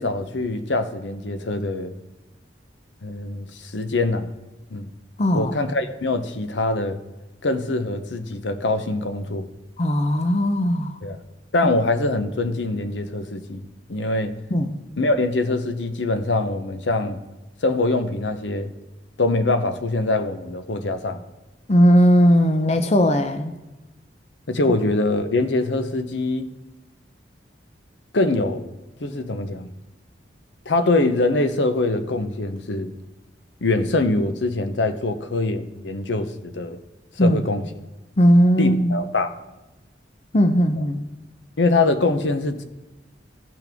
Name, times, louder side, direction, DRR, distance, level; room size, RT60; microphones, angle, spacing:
voice 1, 0.0-1.9 3.0-4.3 4.7-4.9 5.3-7.0 7.4-9.5 11.0-11.2 11.5-13.6 13.9-14.3 15.0-17.2 17.6-18.7 19.2-21.2 24.5-26.5 28.1-28.7 29.0-29.7 30.7-32.9 33.6-36.8 37.2-37.6 38.6-39.3 41.6-42.6, left 2 dB, 75° left, 0.8 m, -23 dB
voice 2, 5.2-5.5 9.8-10.9 14.5-14.8 21.7-23.5 37.2-37.4 38.2-39.0 40.3-41.0, equal, 35° left, 0.6 m, -17 dB
16.5 x 5.9 x 3.5 m
head